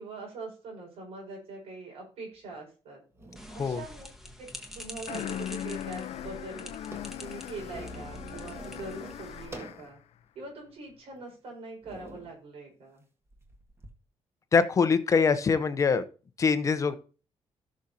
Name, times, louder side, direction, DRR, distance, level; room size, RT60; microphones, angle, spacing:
voice 1, 0.0-3.0 3.5-4.1 4.7-6.7 7.2-10.0 10.3-13.0, right 3 dB, 70° right, -1 dB, 5.1 m, -43 dB
sound 1, 2.5-2.6 3.1-3.7 4.4-5.5 5.7-5.8 6.1-9.9 10.4-10.5 11.2-11.4 11.8-12.3 13.3-13.9, right 1 dB, 25° right, 1.7 m, -47 dB
sound 2, 3.4-9.5, equal, 5° right, 1.3 m, -46 dB
sound 3, 5.1-10.0, left 11 dB, 80° left, 0.6 m, -39 dB
voice 2, 14.5-16.0 16.4-16.9, left 5 dB, 30° left, 11 dB, 0.7 m, -23 dB
17.0 x 6.3 x 2.8 m, 0.36 s
cardioid pair, 175°, 10 cm